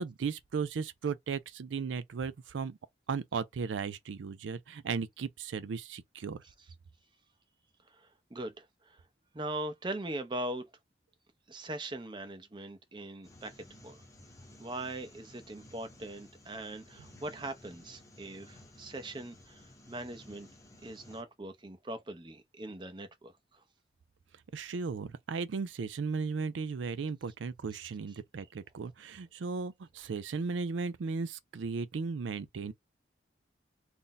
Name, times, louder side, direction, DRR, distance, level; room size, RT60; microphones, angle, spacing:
voice 1, 0.0-2.8 3.1-6.4 24.5-32.7, right 5 dB, 90° right, 0.4 m, -36 dB
voice 2, 7.9-9.0 9.3-10.6 11.5-13.5 13.8-14.0 14.6-20.5 20.8-23.6, right 1 dB, 25° right, 0.6 m, -41 dB
sound 1, 13.2-21.2, left 1 dB, 15° left, 0.7 m, -55 dB
2.6 x 2.1 x 3.9 m
head